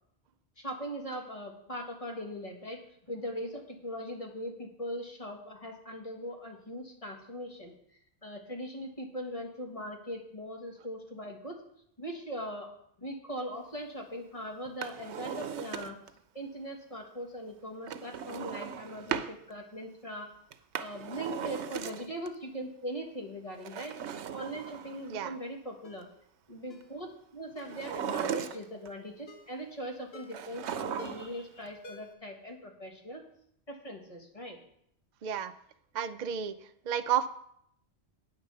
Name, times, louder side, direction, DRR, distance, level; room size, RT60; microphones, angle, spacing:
voice 1, 0.6-2.8 3.1-7.7 8.2-11.6 12.0-12.7 13.0-16.0 16.3-20.3 20.8-24.0 24.3-26.0 26.5-33.2 33.7-34.6, equal, 30° left, 2 dB, 1.6 m, -40 dB
Drawer open or close, 14.7-16.2 17.9-19.3 20.5-22.3 23.5-25.2 27.6-28.9 30.3-31.4 31.7-31.8, right 8 dB, 80° right, 0.9 m, -37 dB
Ringtone, 25.8-26.1 26.7-26.9 27.6-27.8 28.4-28.7 29.3-29.6 30.1-30.5 31.0-31.4 31.8-32.3 32.6-32.7, left 2 dB, 65° left, 1.3 m, -52 dB
voice 2, 35.2-35.5 35.9-36.5 36.9-37.3, right 9 dB, 55° right, 10 dB, 0.6 m, -31 dB
9.1 x 6.6 x 6.7 m, 0.70 s
omnidirectional pair, 1.1 m